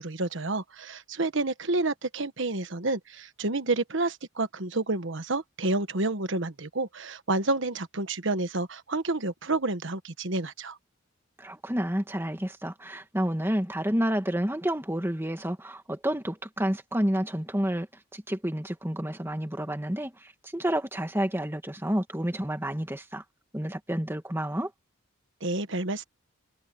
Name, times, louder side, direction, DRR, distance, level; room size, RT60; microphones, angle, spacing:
voice 1, 0.0-10.8 25.4-26.0, right 2 dB, 60° right, 1.4 m, -29 dB
voice 2, 11.4-17.9 18.1-23.2 23.5-24.7, equal, 10° right, 2.0 m, -29 dB
head